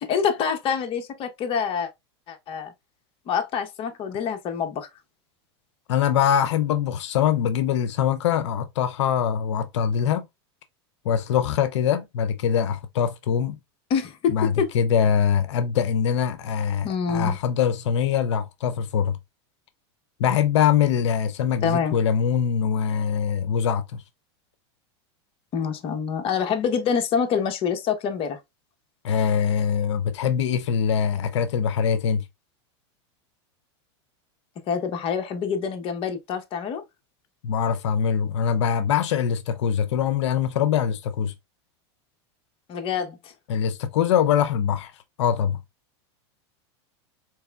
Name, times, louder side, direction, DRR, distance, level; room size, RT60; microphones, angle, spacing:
voice 1, 0.0-1.9 2.3-2.7 3.3-4.9 13.9-14.7 16.8-17.4 21.6-22.0 25.5-28.4 34.7-36.8 42.7-43.3, left 7 dB, 40° left, 0.8 m, -26 dB
voice 2, 5.9-10.3 11.1-13.6 14.3-19.2 20.2-23.8 29.0-32.2 37.4-41.3 43.5-44.9 45.2-45.6, left 8 dB, 85° left, 0.5 m, -23 dB
4.6 x 2.9 x 2.2 m
supercardioid pair, 125°, 15 cm